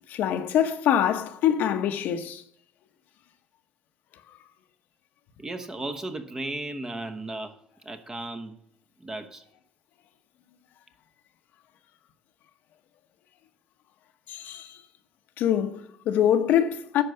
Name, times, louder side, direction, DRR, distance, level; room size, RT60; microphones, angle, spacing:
voice 1, 0.1-2.4 14.3-14.8 15.4-17.0, left 10 dB, 70° left, 0.9 m, -24 dB
voice 2, 5.4-7.6 7.8-8.5 9.0-9.4, right 2 dB, 20° right, 0.9 m, -35 dB
10.0 x 4.7 x 6.5 m
cardioid pair, 100°, 3 cm